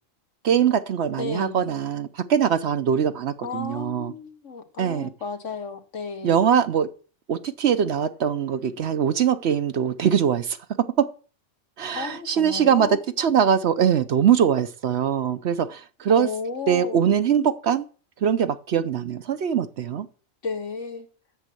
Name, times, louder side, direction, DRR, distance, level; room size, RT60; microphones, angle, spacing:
voice 1, 0.4-4.1 4.8-5.1 6.2-6.9 7.3-10.6 11.0-11.1 11.8-16.3 16.7-17.8 18.2-20.1, right 8 dB, 60° right, 0.9 m, -22 dB
voice 2, 1.2-1.7 3.4-6.4 11.9-13.0 16.1-17.0 20.4-21.1, left 4 dB, 70° left, 1.8 m, -33 dB
8.2 x 7.2 x 7.7 m
omnidirectional pair, 1.3 m